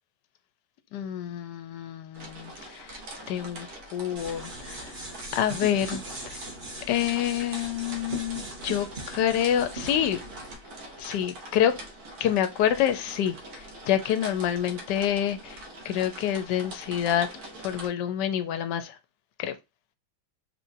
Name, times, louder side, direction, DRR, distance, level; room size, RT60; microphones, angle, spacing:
voice 1, 0.9-3.0 3.3-3.7 3.9-4.9 5.3-6.4 6.9-10.2 11.0-11.7 12.2-13.4 13.9-15.6 15.8-17.3 17.6-18.9 19.4-19.6, left 10 dB, 70° left, 1.1 m, -27 dB
sound 1, 2.1-17.9, right 1 dB, 55° right, 1.3 m, -43 dB
sound 2, 4.2-10.6, right 2 dB, 25° right, 1.5 m, -40 dB
4.3 x 3.1 x 2.6 m
omnidirectional pair, 2.2 m